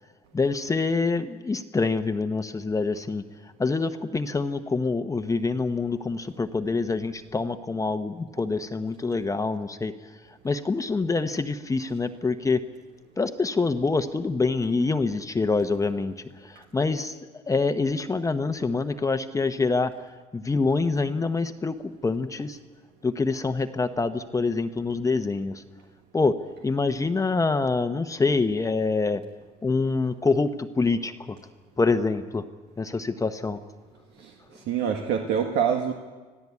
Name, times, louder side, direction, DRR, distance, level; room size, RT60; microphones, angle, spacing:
voice 1, 0.3-3.2 3.6-9.9 10.4-12.6 13.2-16.1 16.7-17.1 17.5-19.9 20.3-21.7 22.0-22.6 23.0-25.6 26.1-26.3 26.6-29.2 29.6-31.1 31.8-32.4 32.8-33.6, left 3 dB, 20° left, 9 dB, 1.0 m, -25 dB
voice 2, 34.2-35.9, right 7 dB, 85° right, 3 dB, 1.6 m, -26 dB
25.5 x 16.0 x 8.4 m, 1.3 s
cardioid pair, 110°, 17 cm